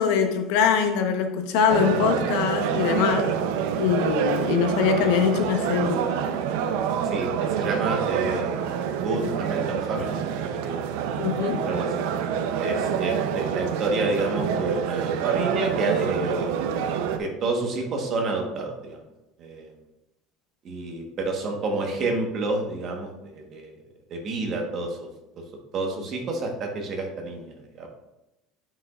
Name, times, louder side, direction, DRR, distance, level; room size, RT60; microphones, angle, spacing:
voice 1, 0.0-3.3 3.8-6.0 11.2-11.7, left 7 dB, 70° left, 6 dB, 0.9 m, -23 dB
sound 1, 1.7-17.2, right 8 dB, 85° right, 0.5 m, -27 dB
voice 2, 7.0-8.5 8.9-10.8 11.7-11.9 12.6-16.5 17.2-19.0 19.4-19.7 20.6-23.7 24.1-25.0 25.7-27.9, right 2 dB, 35° right, 2 dB, 1.2 m, -29 dB
8.9 x 5.3 x 2.4 m, 0.94 s
cardioid pair, 175°, 0 cm